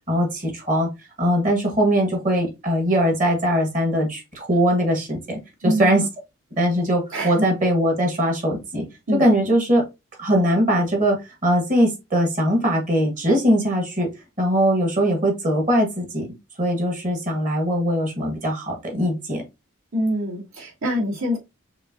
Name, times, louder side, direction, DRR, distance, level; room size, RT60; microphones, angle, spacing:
voice 1, 0.1-0.9 1.2-6.0 6.6-8.9 9.2-9.8 10.2-14.1 14.4-19.4, equal, 40° right, 1.3 m, -21 dB
voice 2, 5.6-6.1 7.1-7.6 9.1-9.2 19.9-21.4, equal, 75° right, 2.4 m, -25 dB
6.3 x 2.5 x 2.6 m
head